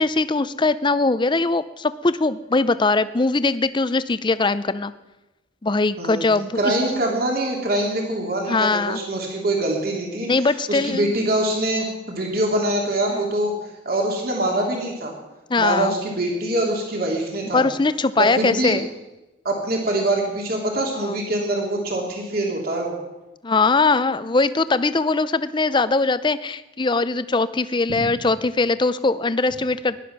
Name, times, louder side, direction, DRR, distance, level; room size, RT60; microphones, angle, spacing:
voice 1, 0.0-4.9 5.6-6.7 8.5-9.0 10.3-11.1 13.1-13.2 15.5-15.9 17.5-18.9 20.9-21.2 23.4-30.0, left 3 dB, 25° left, 14 dB, 0.6 m, -21 dB
voice 2, 6.5-10.3 10.7-13.5 13.8-15.1 15.6-17.6 18.2-18.8 19.4-22.9 27.9-28.0, right 1 dB, 55° right, 0 dB, 3.2 m, -24 dB
18.0 x 11.5 x 6.1 m, 1.0 s
head